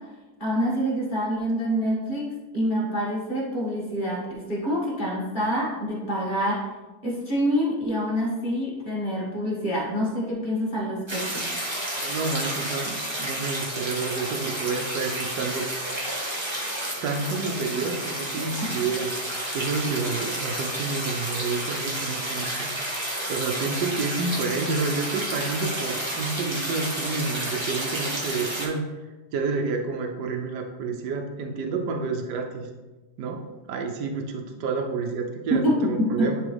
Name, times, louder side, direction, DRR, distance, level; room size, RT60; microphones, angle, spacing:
voice 1, 0.4-6.7 7.0-11.5 35.6-36.3, equal, 30° left, -5 dB, 2.0 m, -26 dB
sound 1, 11.1-28.7, right 1 dB, 15° right, 1.4 m, -31 dB
voice 2, 11.9-15.7 17.0-22.7 23.3-28.8 29.3-32.7 33.2-36.4, right 4 dB, 85° right, 3 dB, 1.3 m, -29 dB
10.5 x 3.7 x 3.4 m, 1.2 s
omnidirectional pair, 1.7 m